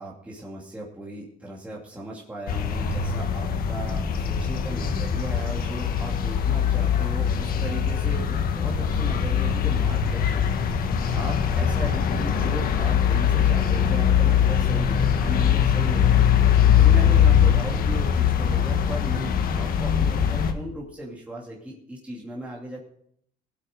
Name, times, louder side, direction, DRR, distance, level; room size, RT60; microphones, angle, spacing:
voice 1, 0.0-10.6 11.1-16.2 16.7-22.8, right 1 dB, 10° right, -4 dB, 2.6 m, -37 dB
sound 1, 2.5-20.5, left 8 dB, 60° left, 1.6 m, -22 dB
17.5 x 8.3 x 5.1 m, 0.69 s
cardioid pair, 110°, 17 cm